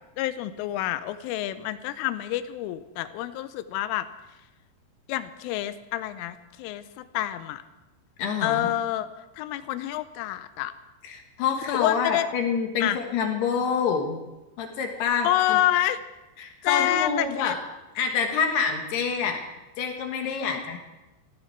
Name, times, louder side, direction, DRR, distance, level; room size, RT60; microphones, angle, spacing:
voice 1, 0.2-4.1 5.1-7.6 8.4-9.1 9.4-10.7 11.7-12.3 12.8-13.0 15.2-16.0 16.6-17.6 20.3-20.6, left 13 dB, 85° left, 12 dB, 3.3 m, -28 dB
voice 2, 8.2-8.7 11.0-14.2 14.6-15.6 16.4-17.6 17.9-19.4 19.8-20.8, left 6 dB, 65° left, 4 dB, 3.1 m, -27 dB
18.5 x 15.0 x 4.6 m, 1.1 s
omnidirectional pair, 5.6 m